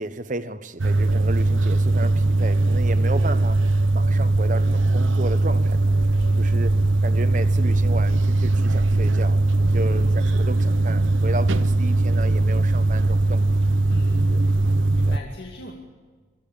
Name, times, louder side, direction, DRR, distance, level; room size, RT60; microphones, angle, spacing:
voice 1, 0.0-6.0 6.4-6.7 7.0-13.6 14.3-14.4 15.1-15.2, right 2 dB, 40° right, 11 dB, 1.0 m, -33 dB
sound 1, 0.8-15.2, right 2 dB, 80° right, 0.8 m, -20 dB
voice 2, 6.1-6.5 9.7-10.2 11.6-11.7 13.9-14.4 14.9-15.7, left 1 dB, 55° left, -1 dB, 2.5 m, -40 dB
25.0 x 15.0 x 8.6 m, 1.4 s
head